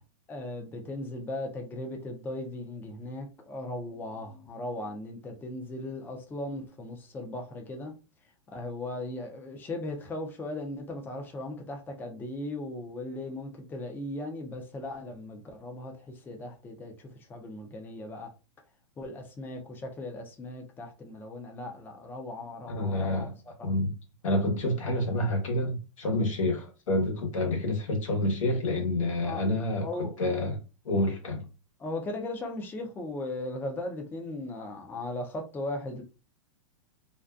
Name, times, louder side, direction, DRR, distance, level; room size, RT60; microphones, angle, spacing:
voice 1, 0.3-7.9 8.5-18.3 19.0-23.7 29.2-29.5 29.8-30.2 31.8-36.0, left 2 dB, 10° left, 0.4 m, -38 dB
voice 2, 22.7-23.3 23.6-23.9 24.2-30.6 30.8-31.5, left 1 dB, 85° left, 1.0 m, -28 dB
2.5 x 2.3 x 2.3 m
hypercardioid pair, 125°, 17 cm